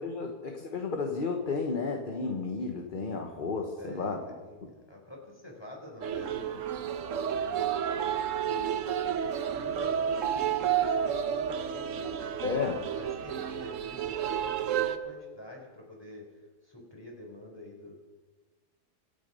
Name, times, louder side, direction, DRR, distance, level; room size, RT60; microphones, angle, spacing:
voice 1, 0.0-4.2 12.4-12.8, left 4 dB, 35° left, 3 dB, 1.2 m, -32 dB
voice 2, 3.8-8.1 8.4-8.7 9.3-18.0, left 1 dB, 15° left, -1 dB, 4.3 m, -48 dB
sound 1, 6.0-15.0, right 9 dB, 55° right, 1.1 m, -31 dB
25.0 x 9.2 x 5.5 m, 1.3 s
omnidirectional pair, 1.7 m